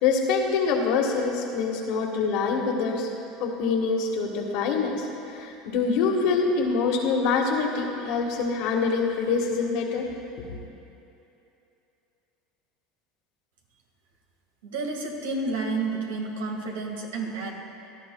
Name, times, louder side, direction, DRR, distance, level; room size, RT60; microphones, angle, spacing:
voice 1, 0.0-3.1 3.4-10.1, left 4 dB, 65° left, 1 dB, 1.6 m, -25 dB
voice 2, 14.6-17.5, right 3 dB, 90° right, 1 dB, 1.7 m, -30 dB
17.0 x 12.0 x 2.3 m, 2.8 s
supercardioid pair, 105°, 0 cm